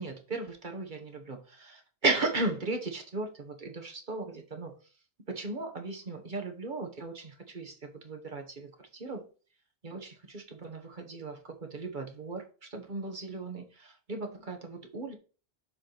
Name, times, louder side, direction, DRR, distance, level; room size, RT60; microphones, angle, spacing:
voice 1, 0.0-4.7 5.3-9.2 9.8-15.1, right 3 dB, 50° right, 3 dB, 1.4 m, -36 dB
7.3 x 4.7 x 4.0 m, 0.36 s
omnidirectional pair, 1.1 m